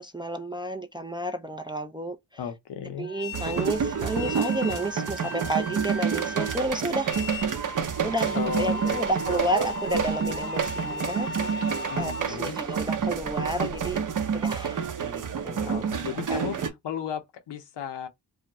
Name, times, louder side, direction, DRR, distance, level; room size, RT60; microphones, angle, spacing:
voice 1, 0.0-2.4 2.8-7.1 8.0-11.7 12.0-14.0 14.3-16.4, right 1 dB, 10° right, 0.3 m, -31 dB
voice 2, 2.4-3.1 8.3-9.0 11.9-12.6 15.7-16.6 16.8-18.1, left 7 dB, 75° left, 0.7 m, -34 dB
sound 1, 3.0-12.2, left 3 dB, 30° left, 0.6 m, -37 dB
sound 2, 3.3-16.7, right 6 dB, 50° right, 0.6 m, -29 dB
2.3 x 2.1 x 2.7 m
cardioid pair, 45°, 42 cm